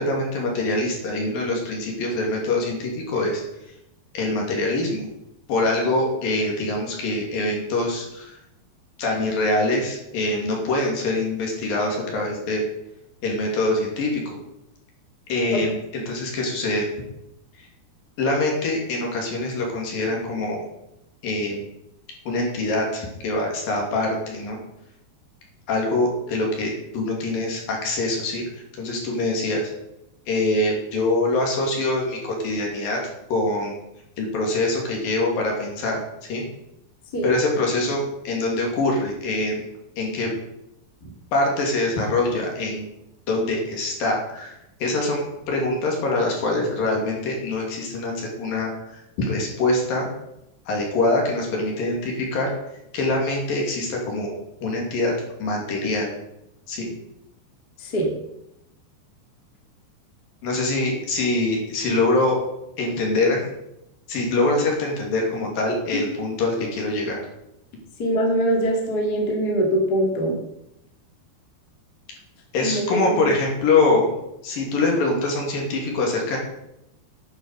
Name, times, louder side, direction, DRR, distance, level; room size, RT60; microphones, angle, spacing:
voice 1, 0.0-3.4 4.1-5.1 5.5-8.4 9.0-12.6 13.2-14.2 15.3-16.9 18.2-20.6 21.2-21.7 22.3-24.6 25.7-28.4 28.8-29.7 30.3-33.0 33.3-33.8 34.2-36.0 36.3-36.4 37.2-39.7 40.0-40.3 41.3-42.8 43.3-44.5 44.8-50.1 50.7-52.5 52.9-54.3 54.6-55.1 55.4-56.1 56.7-56.9 60.4-62.4 62.8-63.5 64.1-67.2 72.5-74.0 74.4-76.4, left 2 dB, 55° left, 0 dB, 4.0 m, -24 dB
voice 2, 57.8-58.1 68.0-70.3 72.6-73.3, right 1 dB, 30° left, 0 dB, 2.2 m, -23 dB
10.0 x 9.0 x 6.5 m, 0.84 s
omnidirectional pair, 5.0 m